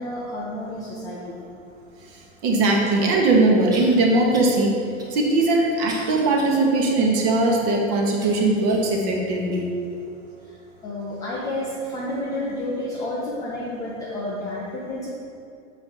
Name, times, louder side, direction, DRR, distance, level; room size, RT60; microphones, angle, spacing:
voice 1, 0.0-1.5 10.4-10.6 10.8-15.2, left 1 dB, 10° left, -6 dB, 0.4 m, -30 dB
voice 2, 2.4-4.7 5.1-9.7, right 2 dB, 35° right, 0 dB, 1.1 m, -20 dB
sound 1, 3.7-4.0 4.3-4.6 5.0-6.6 7.1-7.2 8.2-8.9 9.5-9.6 10.4-10.5, right 1 dB, 10° right, 0.8 m, -41 dB
7.0 x 4.9 x 4.4 m, 2.5 s
figure-of-eight pair, 100°, 40 cm